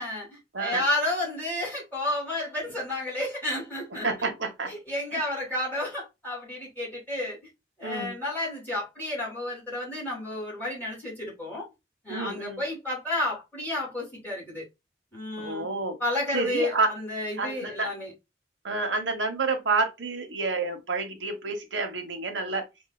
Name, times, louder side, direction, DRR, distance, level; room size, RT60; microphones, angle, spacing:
voice 1, 0.0-4.1 4.7-7.4 7.8-11.7 12.0-14.6 15.1-15.7 16.0-18.1, left 1 dB, 10° left, 2.4 m, -31 dB
voice 2, 4.0-4.7 5.1-5.2 7.8-8.2 12.1-12.6 15.4-16.0 16.3-16.9 17.4-17.9 18.6-22.6, right 3 dB, 90° right, 1.1 m, -29 dB
5.4 x 2.7 x 2.3 m
head